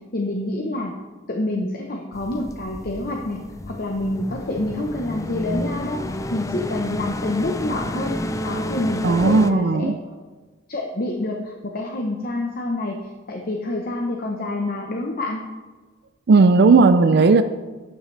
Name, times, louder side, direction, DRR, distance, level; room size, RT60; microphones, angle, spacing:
voice 1, 0.1-0.9 1.3-3.4 3.7-6.0 6.3-8.2 8.4-9.9 10.7-13.0 13.3-15.4, left 1 dB, 50° left, 1 dB, 0.9 m, -27 dB
sound 1, 2.1-9.5, left 1 dB, 15° left, 0.4 m, -30 dB
voice 2, 9.0-10.0 16.3-17.4, right 4 dB, 55° right, 10 dB, 0.4 m, -15 dB
12.5 x 9.1 x 3.3 m, 1.3 s
head